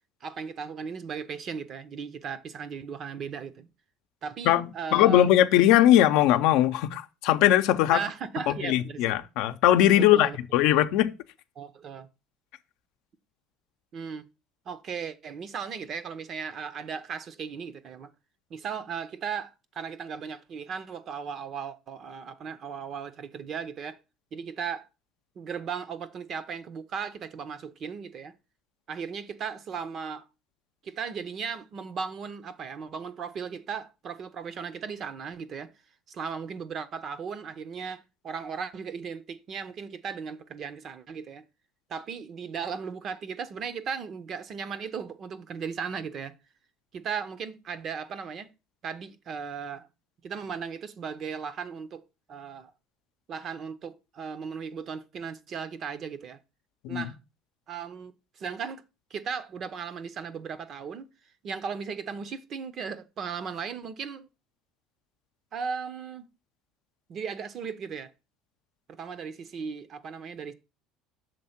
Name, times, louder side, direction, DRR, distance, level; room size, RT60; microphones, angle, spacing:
voice 1, 0.2-3.7 4.2-5.3 7.9-9.2 10.0-10.4 11.6-12.1 13.9-14.3 14.7-18.1 18.5-24.0 24.3-24.9 25.4-28.3 28.9-30.2 30.8-35.7 36.1-41.4 41.9-46.3 46.9-48.5 48.8-49.9 50.2-52.7 53.3-56.4 56.9-57.2 57.7-58.8 59.1-61.1 61.4-64.3 65.5-66.3 67.1-68.1 68.9-70.5, right 6 dB, 45° right, 0.7 m, -36 dB
voice 2, 4.4-8.0 8.5-11.1 56.8-57.1, left 12 dB, 75° left, 0.6 m, -21 dB
6.6 x 3.6 x 5.7 m
cardioid pair, 120°, 0 cm